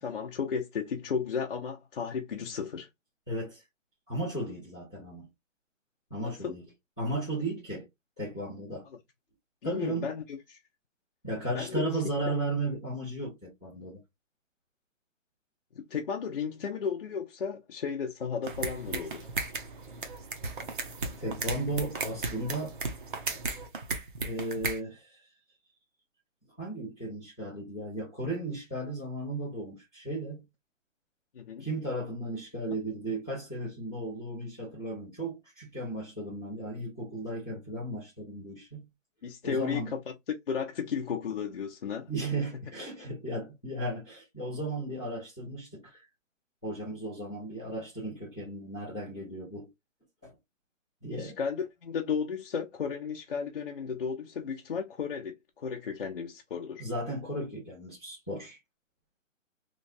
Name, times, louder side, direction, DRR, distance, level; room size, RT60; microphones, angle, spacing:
voice 1, 0.0-2.9 6.2-6.6 9.6-10.6 11.5-11.9 15.8-19.3 31.3-31.7 39.2-40.0 40.5-42.1 51.1-56.9, left 6 dB, 45° left, 0.7 m, -34 dB
voice 2, 3.3-3.6 4.1-5.3 6.1-6.6 7.0-7.9 8.2-8.9 9.6-10.1 11.2-14.0 21.2-22.8 24.2-25.2 26.6-30.5 31.6-38.9 39.4-39.9 42.1-46.1 46.6-49.7 50.2-50.3 51.0-51.4 56.8-58.6, right 1 dB, 5° left, 0.5 m, -35 dB
sound 1, 18.4-24.8, right 4 dB, 40° right, 0.7 m, -35 dB
3.1 x 2.3 x 4.0 m
hypercardioid pair, 165°, 39 cm